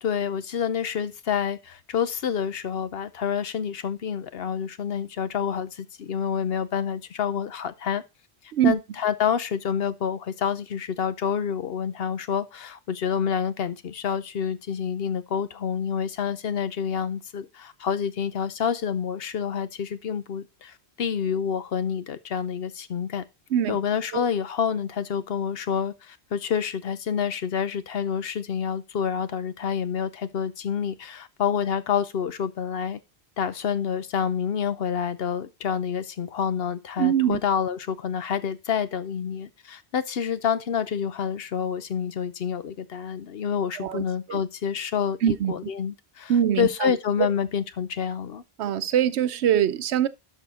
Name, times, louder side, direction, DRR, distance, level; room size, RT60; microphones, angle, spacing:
voice 1, 0.0-8.0 8.6-23.2 23.7-33.0 33.4-46.3 46.6-48.4, left 7 dB, 65° left, 0.9 m, -28 dB
voice 2, 37.0-37.4 43.8-44.0 44.3-44.4 45.2-45.7 46.3-47.0 48.6-50.1, right 10 dB, 90° right, 1.0 m, -23 dB
12.5 x 4.3 x 4.2 m
omnidirectional pair, 1.1 m